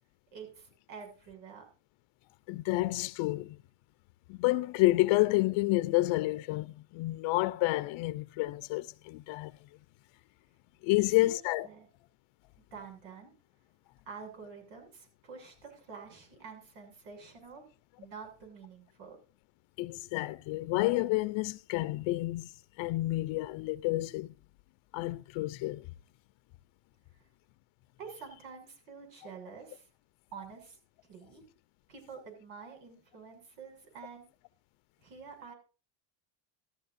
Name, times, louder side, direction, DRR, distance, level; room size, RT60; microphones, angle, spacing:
voice 1, 0.3-1.6 10.9-11.4 11.6-11.9 12.7-13.3 14.1-17.6 18.0-19.2 28.0-29.9 30.3-30.8 31.1-31.4 31.9-34.3 35.0-35.5, right 5 dB, 90° right, 7.2 m, -48 dB
voice 2, 2.5-3.6 4.3-9.5 10.8-11.7 19.8-22.5 22.8-24.3 24.9-25.9, left 19 dB, 65° left, 0.8 m, -29 dB
14.5 x 14.0 x 2.6 m
cardioid pair, 115°, 49 cm